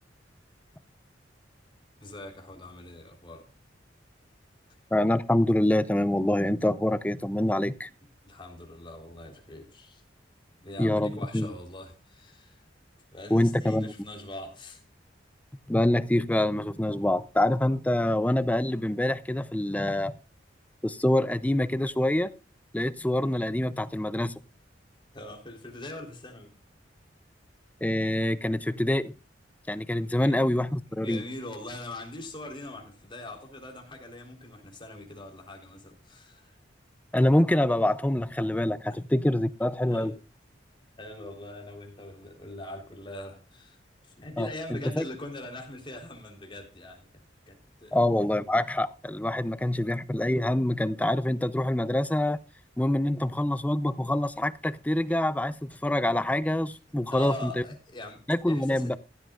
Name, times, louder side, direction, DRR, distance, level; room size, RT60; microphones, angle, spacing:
voice 1, 2.0-3.5 8.2-10.0 10.6-12.6 13.1-14.8 25.1-26.5 30.2-30.4 31.0-36.6 38.9-39.0 39.8-40.2 41.0-48.0 57.1-58.9, left 1 dB, 25° left, 3.7 m, -42 dB
voice 2, 4.9-7.9 10.8-11.5 13.3-13.9 15.7-20.1 20.8-22.3 22.7-24.4 27.8-29.1 29.7-31.2 37.1-40.1 44.4-44.5 45.0-45.1 47.9-52.4 52.8-57.6 58.3-59.0, left 1 dB, 10° left, 0.5 m, -25 dB
15.5 x 12.5 x 2.4 m
head